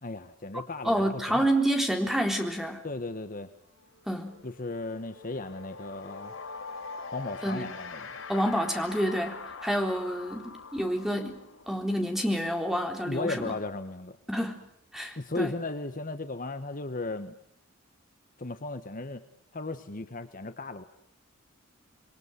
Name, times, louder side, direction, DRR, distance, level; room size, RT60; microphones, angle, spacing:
voice 1, 0.0-1.5 2.8-3.5 4.4-6.4 7.1-8.1 13.0-14.2 15.2-17.3 18.4-19.2 19.5-20.8, left 2 dB, 40° left, 10 dB, 1.4 m, -36 dB
voice 2, 0.5-2.8 4.1-4.3 7.4-7.7 8.3-11.4 11.7-13.6 14.3-14.6 14.9-15.5, equal, ahead, 4 dB, 3.8 m, -28 dB
sound 1, 3.2-3.4 3.7-14.3, left 4 dB, 90° left, 5.8 m, -44 dB
28.0 x 22.0 x 8.3 m, 0.74 s
head